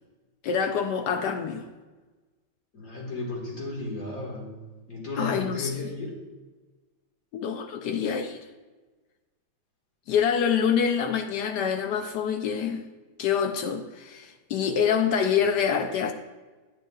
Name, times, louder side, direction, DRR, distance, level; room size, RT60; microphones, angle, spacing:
voice 1, 0.4-1.6 5.2-5.7 7.3-8.4 10.1-12.9 13.2-16.1, left 7 dB, 70° left, 1.1 m, -26 dB
voice 2, 2.7-6.2, left 2 dB, 50° left, 2.2 m, -34 dB
10.5 x 8.0 x 2.3 m
omnidirectional pair, 2.1 m